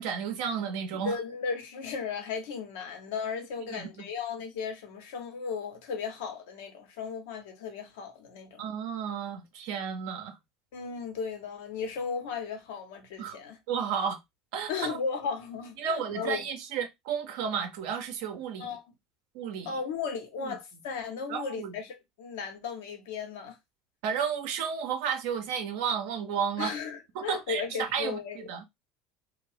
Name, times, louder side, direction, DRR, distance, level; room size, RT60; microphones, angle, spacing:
voice 1, 0.0-1.2 3.7-4.0 8.6-10.4 13.2-13.4 13.7-14.2 14.5-15.0 15.8-18.8 19.3-19.8 20.4-20.6 21.3-21.7 24.0-26.7 27.1-28.6, right 7 dB, 65° right, 0.6 m, -32 dB
voice 2, 1.0-8.6 10.7-13.6 14.7-16.4 18.6-18.8 19.7-23.6 26.6-28.5, left 5 dB, 70° left, 0.8 m, -35 dB
2.6 x 2.1 x 3.2 m
figure-of-eight pair, 70°, 0 cm